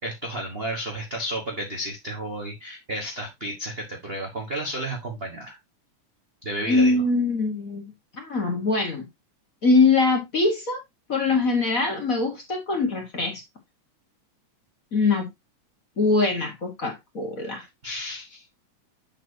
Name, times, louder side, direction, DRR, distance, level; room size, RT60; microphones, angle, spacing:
voice 1, 0.0-5.6 6.4-7.0 17.8-18.5, right 1 dB, 55° right, 0.6 m, -32 dB
voice 2, 6.7-9.1 9.6-10.8 11.1-13.4 14.9-15.3 16.0-17.6, left 3 dB, 40° left, 1.4 m, -23 dB
7.3 x 7.1 x 2.8 m
omnidirectional pair, 3.3 m